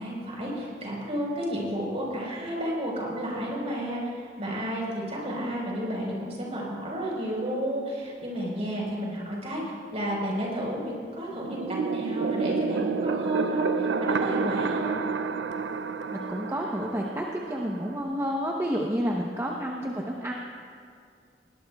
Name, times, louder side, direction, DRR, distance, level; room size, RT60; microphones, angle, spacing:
voice 1, 0.0-9.6 9.9-11.6 11.9-15.0 18.9-19.0, equal, 40° right, -3 dB, 4.3 m, -32 dB
sound 1, 11.5-18.0, right 5 dB, 90° right, 0.4 m, -29 dB
voice 2, 16.1-20.3, equal, 15° right, -1 dB, 0.8 m, -30 dB
20.5 x 18.5 x 2.3 m, 2.2 s
head